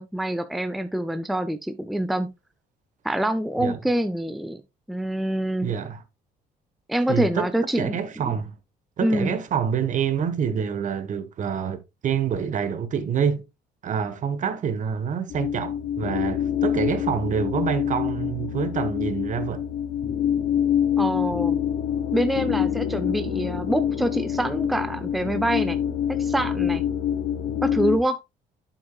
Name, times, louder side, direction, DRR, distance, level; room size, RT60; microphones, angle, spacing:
voice 1, 0.0-2.3 3.0-4.6 4.9-5.7 6.9-8.0 8.3-8.4 9.0-9.3 21.0-21.6 22.1-25.8 26.1-26.8 27.6-28.2, right 1 dB, ahead, 0.6 m, -25 dB
voice 2, 5.6-6.0 7.1-7.5 7.8-8.5 9.0-13.4 13.8-19.6, right 7 dB, 50° right, 1.3 m, -27 dB
sound 1, 15.3-28.0, left 9 dB, 75° left, 2.4 m, -26 dB
8.6 x 7.3 x 2.3 m
cardioid pair, 110°, 17 cm